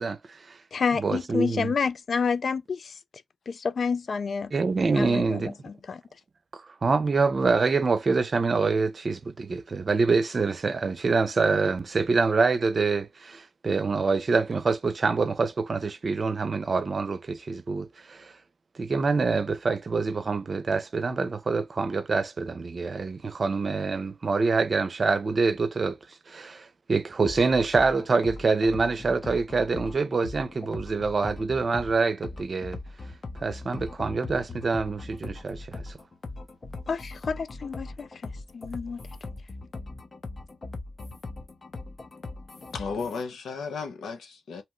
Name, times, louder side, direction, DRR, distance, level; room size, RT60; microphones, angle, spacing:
voice 1, 0.0-0.6 0.9-1.7 4.5-5.5 6.5-18.3 18.7-26.0 26.3-32.8 33.4-36.0, right 4 dB, 50° right, 0.6 m, -26 dB
voice 2, 0.7-3.0 3.5-4.5 4.9-6.0 36.9-39.0, left 5 dB, 60° left, 0.3 m, -29 dB
sound 1, 27.2-43.2, left 3 dB, 45° left, 0.9 m, -40 dB
voice 3, 42.7-44.6, left 5 dB, 75° left, 0.8 m, -34 dB
2.9 x 2.1 x 3.1 m
supercardioid pair, 40°, 0 cm